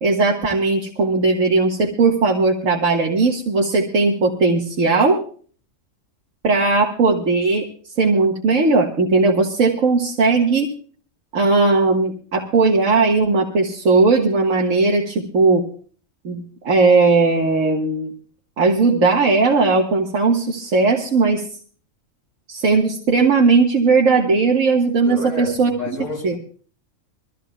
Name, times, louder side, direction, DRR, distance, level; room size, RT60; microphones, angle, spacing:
voice 1, 0.0-5.2 6.4-7.7 8.0-10.7 11.3-15.7 16.2-18.1 18.6-21.4 22.5-26.4, right 3 dB, 75° right, 1.9 m, -17 dB
voice 2, 25.0-26.4, left 2 dB, 30° left, 3.0 m, -30 dB
24.0 x 15.0 x 2.3 m
omnidirectional pair, 1.4 m